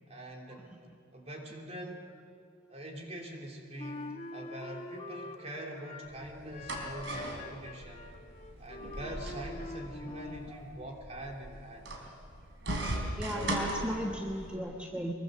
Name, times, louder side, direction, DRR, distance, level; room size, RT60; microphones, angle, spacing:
voice 1, 0.1-0.8 1.1-2.1 2.7-8.2 8.6-11.9, right 1 dB, 35° right, 0 dB, 3.2 m, -44 dB
Wind instrument woodwind instrument, 3.8-6.2 6.5-10.6, left 2 dB, 30° left, 1.2 m, -45 dB
sound 1, 6.1-14.5, right 1 dB, 70° right, 3.8 m, -39 dB
voice 2, 13.2-15.1, equal, 5° right, -1 dB, 1.3 m, -35 dB
24.0 x 22.5 x 6.7 m, 2.2 s
head